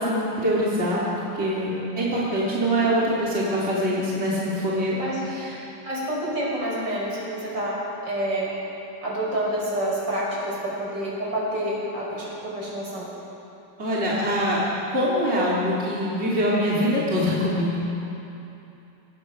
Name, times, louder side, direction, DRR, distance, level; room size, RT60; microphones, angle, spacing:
voice 1, 0.0-5.0 5.3-5.5 13.8-14.6 14.9-17.8, equal, 30° right, -7 dB, 3.6 m, -24 dB
voice 2, 5.8-8.5 9.0-13.1, right 1 dB, 65° right, -5 dB, 6.2 m, -28 dB
25.0 x 19.0 x 6.2 m, 2.9 s
omnidirectional pair, 2.1 m